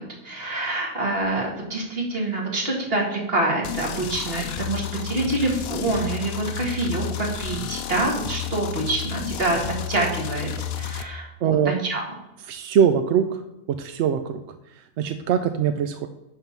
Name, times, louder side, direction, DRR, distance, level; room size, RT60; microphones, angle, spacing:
voice 1, 0.0-9.6 9.9-12.0, right 2 dB, 40° right, -1 dB, 2.1 m, -26 dB
sound 1, 3.6-11.0, left 8 dB, 60° left, 0.7 m, -31 dB
voice 2, 11.4-11.7 12.5-13.4 13.8-14.4 15.0-16.1, right 8 dB, 65° right, 8 dB, 0.7 m, -22 dB
11.0 x 3.8 x 5.9 m, 0.90 s
omnidirectional pair, 1.5 m